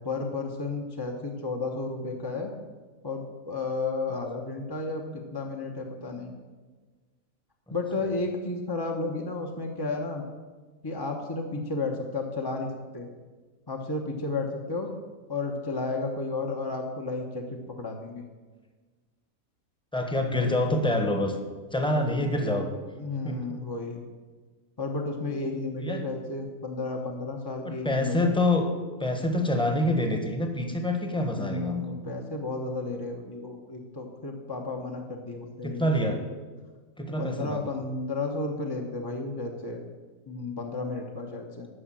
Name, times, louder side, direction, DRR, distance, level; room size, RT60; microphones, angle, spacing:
voice 1, 0.0-2.5 3.0-6.3 7.7-10.2 10.8-13.1 13.7-14.9 15.3-18.2 23.0-24.0 24.8-28.3 31.3-35.9 37.2-39.8 40.3-41.7, left 3 dB, 20° left, 1 dB, 0.8 m, -32 dB
voice 2, 19.9-21.4 21.7-22.7 23.2-23.6 25.8-26.1 27.6-28.7 29.0-32.0 35.6-36.2 37.0-37.7, left 1 dB, 5° left, 4 dB, 1.0 m, -26 dB
11.0 x 6.4 x 7.5 m, 1.4 s
omnidirectional pair, 1.5 m